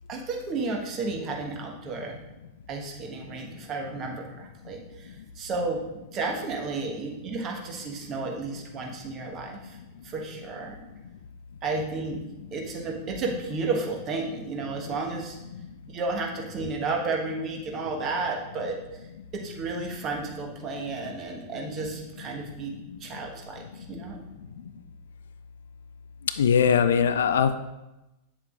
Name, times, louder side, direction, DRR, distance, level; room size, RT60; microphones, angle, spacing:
voice 1, 0.1-2.2 2.7-5.8 6.1-9.8 10.0-10.8 11.6-12.2 12.5-15.4 15.9-18.8 19.3-22.7 23.0-24.2, right 3 dB, 35° right, 0 dB, 1.4 m, -32 dB
voice 2, 26.4-27.6, left 7 dB, 65° left, 11 dB, 0.4 m, -20 dB
8.5 x 7.3 x 2.5 m, 0.96 s
figure-of-eight pair, 90°, 0 cm